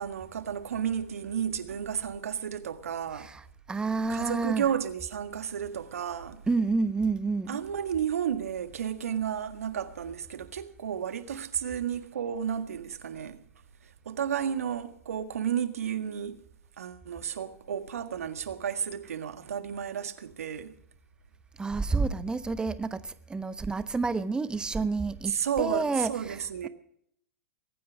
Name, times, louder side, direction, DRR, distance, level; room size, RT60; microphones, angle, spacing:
voice 1, 0.0-3.3 4.1-6.4 7.5-13.4 13.8-16.4 16.8-20.7 25.3-26.7, right 8 dB, 75° right, 1.6 m, -32 dB
voice 2, 3.7-4.7 6.5-7.6 21.6-26.4, right 4 dB, 10° right, 1.0 m, -29 dB
23.0 x 9.5 x 5.0 m
hypercardioid pair, 110°, 8 cm